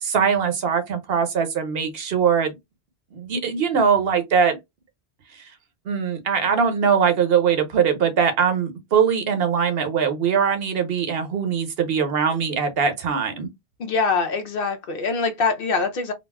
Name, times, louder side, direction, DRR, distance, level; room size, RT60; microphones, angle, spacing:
voice 1, 0.0-2.6 3.1-4.6 5.3-5.5 5.9-13.5, right 6 dB, 70° right, 0.9 m, -21 dB
voice 2, 13.8-16.1, left 4 dB, 65° left, 0.8 m, -23 dB
4.0 x 2.0 x 2.2 m
omnidirectional pair, 1.1 m